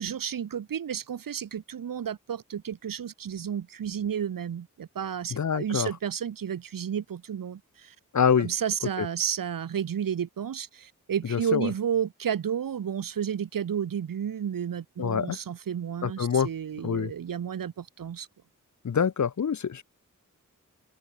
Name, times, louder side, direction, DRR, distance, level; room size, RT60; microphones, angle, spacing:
voice 1, 0.0-7.9 8.4-18.3, right 8 dB, 85° right, 1.3 m, -32 dB
voice 2, 5.3-5.9 8.1-8.5 9.0-9.1 11.3-11.7 15.0-15.4 16.0-16.5 16.8-17.1 18.8-19.8, left 7 dB, 60° left, 1.1 m, -25 dB
open air
wide cardioid pair, 90°, 33 cm